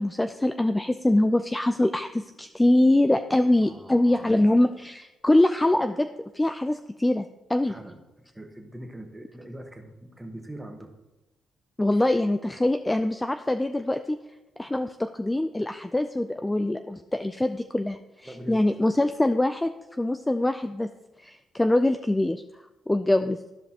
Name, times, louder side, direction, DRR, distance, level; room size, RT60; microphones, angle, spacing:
voice 1, 0.0-6.1 6.3-7.7 11.8-14.2 14.6-19.7 20.0-20.9 21.2-22.4 22.9-23.4, left 1 dB, 10° left, 8 dB, 0.3 m, -23 dB
voice 2, 3.6-4.4 7.7-8.0 8.3-10.9 11.9-12.1 18.2-18.8, right 1 dB, 10° right, 4 dB, 1.2 m, -42 dB
13.0 x 5.2 x 2.9 m, 1.0 s
cardioid pair, 90°, 0 cm